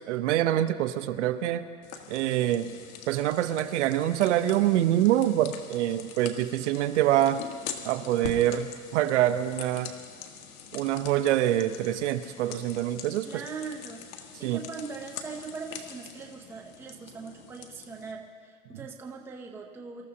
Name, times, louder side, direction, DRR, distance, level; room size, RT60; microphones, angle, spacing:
voice 1, 0.1-1.7 2.1-2.7 3.1-7.4 7.8-9.9 10.7-13.3 14.4-14.6, right 12 dB, 60° right, 11 dB, 0.8 m, -25 dB
sound 1, 1.8-18.1, left 7 dB, 80° left, 1.7 m, -44 dB
voice 2, 13.2-14.0 14.4-20.1, right 5 dB, 5° right, 1 dB, 0.6 m, -40 dB
26.0 x 13.5 x 2.9 m, 2.1 s
supercardioid pair, 160°, 40 cm